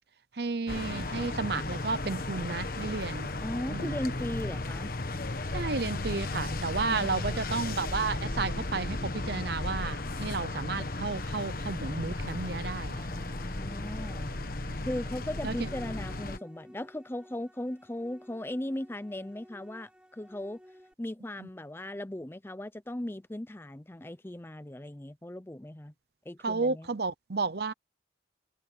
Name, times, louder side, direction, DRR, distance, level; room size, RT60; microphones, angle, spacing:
voice 1, 0.3-3.3 3.7-4.0 5.5-13.1 15.4-15.7 21.4-21.5 26.4-27.7, right 4 dB, 55° right, 0.8 m, -32 dB
sound 1, 0.7-16.4, left 2 dB, 50° left, 1.3 m, -35 dB
voice 2, 3.4-4.9 6.9-7.3 13.0-14.3 14.8-20.6 21.0-25.9 26.3-26.9, left 1 dB, 10° left, 0.5 m, -38 dB
sound 2, 15.2-20.9, equal, 5° right, 2.4 m, -55 dB
head